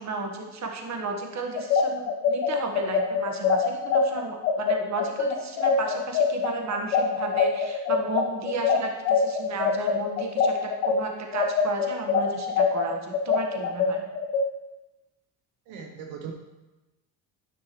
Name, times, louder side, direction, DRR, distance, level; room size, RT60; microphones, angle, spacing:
voice 1, 0.0-14.0, right 3 dB, 35° right, 3 dB, 1.5 m, -34 dB
sound 1, 1.6-11.0 11.3-14.4, left 6 dB, 85° left, 1.3 m, -23 dB
voice 2, 15.7-16.3, right 7 dB, 70° right, 2 dB, 1.1 m, -38 dB
10.0 x 6.1 x 3.2 m, 1.1 s
supercardioid pair, 85°, 48 cm